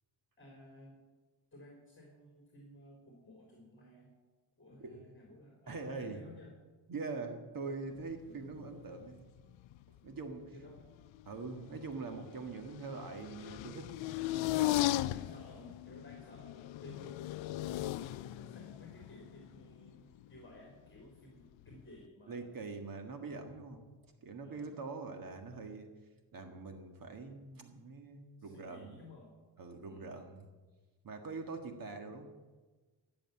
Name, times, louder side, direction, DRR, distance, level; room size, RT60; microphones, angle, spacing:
voice 1, 0.4-1.0 1.5-4.1 4.6-6.5 10.5-10.8 15.1-22.5 24.4-24.7 28.4-29.3 29.8-30.2, left 1 dB, 25° left, -1 dB, 3.9 m, -55 dB
voice 2, 5.7-6.2 6.9-9.3 10.0-10.6 11.3-13.9 17.5-17.8 22.3-23.8 24.2-25.9 26.3-28.9 29.6-30.5 31.0-32.3, right 4 dB, 50° right, 5 dB, 1.7 m, -43 dB
sound 1, 8.1-9.1 9.4-10.3 10.7-21.0 21.6-22.0, left 15 dB, 85° left, 0.6 m, -38 dB
16.5 x 7.0 x 9.7 m, 1.3 s
cardioid pair, 135°, 45 cm